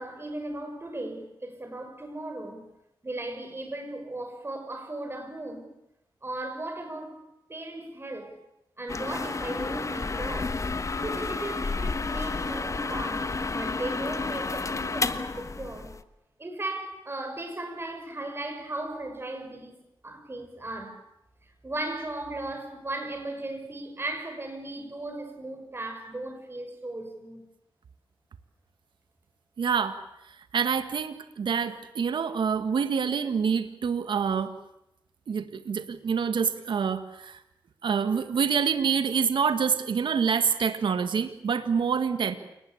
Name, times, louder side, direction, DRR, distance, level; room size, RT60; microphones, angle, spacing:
voice 1, 0.0-2.7 3.0-5.7 6.2-7.2 7.5-8.4 8.8-10.6 11.0-15.9 16.4-19.8 20.0-21.0 21.4-27.4, right 2 dB, 30° right, 6.4 m, -36 dB
sound 1, 8.9-16.0, left 3 dB, 40° left, 1.4 m, -31 dB
voice 2, 29.6-30.0 30.5-34.5 35.3-37.4 37.8-42.3, right 6 dB, 75° right, 1.7 m, -26 dB
28.5 x 20.0 x 8.6 m
cardioid pair, 65°, 8 cm